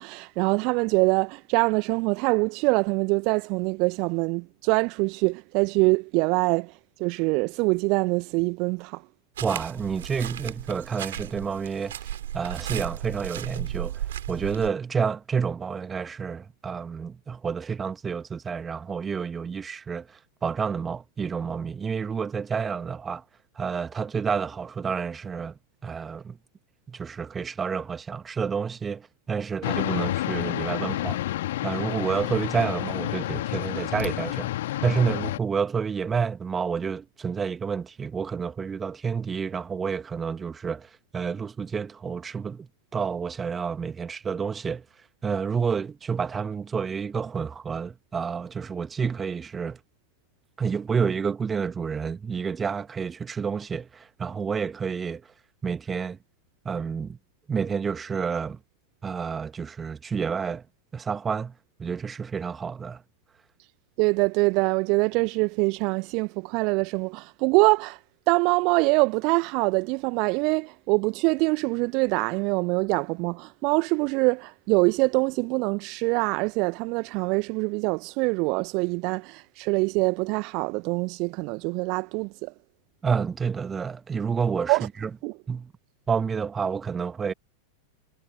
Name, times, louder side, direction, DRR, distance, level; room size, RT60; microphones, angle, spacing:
voice 1, 0.0-6.7 7.0-9.0 64.0-68.0 68.3-82.5 84.7-84.9 85.2-85.3, right 29 dB, 45° right, 1.1 m, -24 dB
voice 2, 9.4-23.2 23.5-26.4 26.9-31.2 31.6-34.5 34.8-44.8 45.2-49.8 50.6-55.3 55.6-56.2 56.6-57.2 57.5-58.6 59.0-60.6 60.9-61.5 61.8-63.0 83.0-85.1 85.5-85.7 86.1-87.3, right 6 dB, 20° right, 1.7 m, -29 dB
sound 1, 9.4-14.7, right 11 dB, 60° right, 6.9 m, -35 dB
sound 2, 29.6-35.4, left 14 dB, 55° left, 1.9 m, -29 dB
figure-of-eight pair, 90°, 0 cm